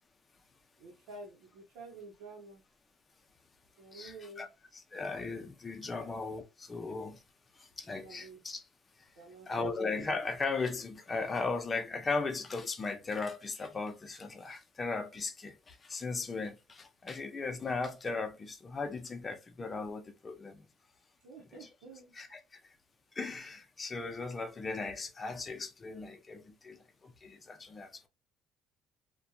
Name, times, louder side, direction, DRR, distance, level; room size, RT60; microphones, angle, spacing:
voice 1, 0.8-2.6 3.8-4.5 6.0-6.1 8.0-8.4 9.2-9.5 21.2-22.1, right 3 dB, 90° right, 0.7 m, -49 dB
voice 2, 3.9-4.5 4.7-7.2 7.6-8.6 9.5-20.7 21.6-21.7 22.1-22.6 23.2-28.1, left 3 dB, 25° left, 0.5 m, -37 dB
2.7 x 2.2 x 2.3 m
cardioid pair, 110°, 0 cm